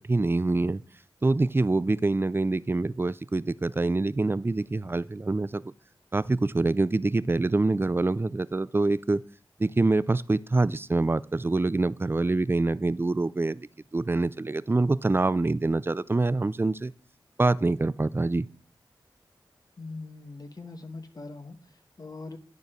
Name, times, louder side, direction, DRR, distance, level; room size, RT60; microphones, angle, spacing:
voice 1, 0.1-0.8 1.2-5.6 6.1-9.2 9.6-13.6 13.9-16.9 17.4-18.5, right 2 dB, 25° right, 0.4 m, -25 dB
voice 2, 19.8-22.4, left 3 dB, 45° left, 1.2 m, -42 dB
10.5 x 4.6 x 5.0 m
cardioid pair, 40°, 9 cm